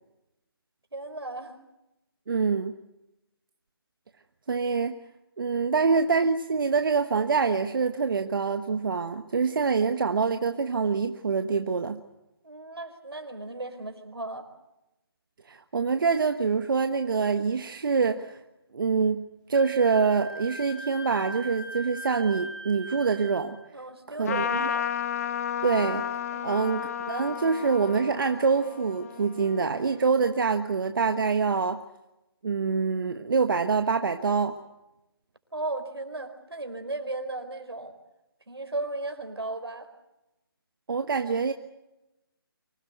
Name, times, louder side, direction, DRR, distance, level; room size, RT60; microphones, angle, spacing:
voice 1, 0.9-1.5 5.7-5.9 12.4-14.5 23.7-24.9 26.3-26.5 35.5-37.9 38.5-39.9, right 2 dB, 90° right, 7 dB, 4.4 m, -36 dB
voice 2, 2.3-2.7 4.5-4.9 5.4-12.0 15.5-18.4 18.7-23.6 24.2-24.7 25.6-26.0 26.4-26.8 27.1-31.8 32.4-34.6 40.9-41.5, right 5 dB, 60° right, 7 dB, 1.3 m, -25 dB
Wind instrument woodwind instrument, 19.5-23.5, right 1 dB, 25° right, 5.5 m, -40 dB
Trumpet, 24.2-30.1, left 9 dB, 40° left, 1.4 m, -32 dB
25.0 x 18.0 x 8.0 m, 0.92 s
figure-of-eight pair, 155°, 13 cm